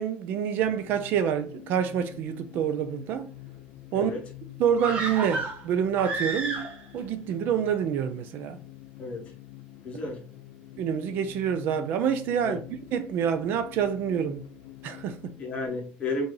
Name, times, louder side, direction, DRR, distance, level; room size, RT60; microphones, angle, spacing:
voice 1, 0.0-3.3 3.9-4.1 4.6-6.6 6.9-8.6 10.8-12.6 12.9-14.4 14.8-15.3, right 8 dB, 50° right, 0.4 m, -27 dB
sound 1, 0.6-15.7, left 15 dB, 80° left, 0.6 m, -47 dB
sound 2, 4.8-7.0 7.3-7.4, right 3 dB, 30° right, 0.8 m, -31 dB
voice 2, 9.0-9.3 9.8-10.2 12.4-12.6 15.4-16.3, left 2 dB, 30° left, 1.2 m, -32 dB
5.7 x 2.6 x 3.2 m
cardioid pair, 180°, 4 cm